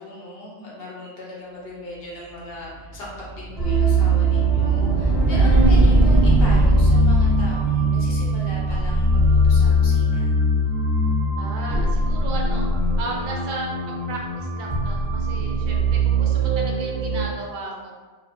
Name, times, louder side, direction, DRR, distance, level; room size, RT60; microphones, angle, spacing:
voice 1, 0.0-10.4, left 1 dB, 60° left, -5 dB, 0.9 m, -38 dB
sound 1, 2.9-9.8, right 2 dB, 85° left, 1.2 m, -21 dB
sound 2, 3.6-17.2, right 1 dB, 25° right, 0.8 m, -21 dB
voice 2, 11.4-12.6 13.0-13.7 14.1-17.9, right 2 dB, 60° right, -1 dB, 0.6 m, -34 dB
2.9 x 2.4 x 2.4 m, 1.4 s
omnidirectional pair, 1.2 m